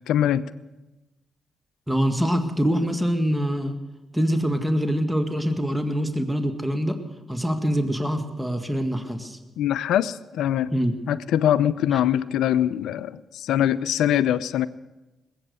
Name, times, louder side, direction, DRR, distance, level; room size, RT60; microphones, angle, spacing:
voice 1, 0.1-0.4 9.6-10.7 11.1-14.7, left 11 dB, 80° left, 18 dB, 0.5 m, -23 dB
voice 2, 1.9-3.7 4.1-7.0 7.3-9.4 10.7-10.9 11.9-12.0, equal, 5° right, 6 dB, 1.9 m, -24 dB
20.0 x 8.5 x 8.2 m, 1.1 s
supercardioid pair, 50°, 0 cm